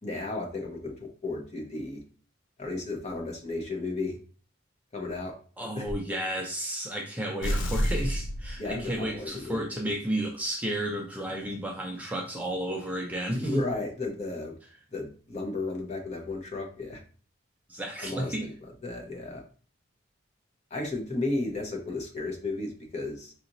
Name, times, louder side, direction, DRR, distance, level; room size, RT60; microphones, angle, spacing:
voice 1, 0.0-2.0 2.6-4.2 4.9-5.3 5.7-5.9 8.6-9.9 13.3-14.6 14.9-17.0 18.0-19.4 20.7-23.3, left 2 dB, 35° left, 1 dB, 0.9 m, -34 dB
voice 2, 5.6-13.6 17.7-18.5, right 1 dB, 10° right, -1 dB, 0.5 m, -32 dB
sound 1, 7.4-9.3, equal, 75° left, 0.5 m, -30 dB
4.9 x 2.9 x 2.6 m, 0.40 s
head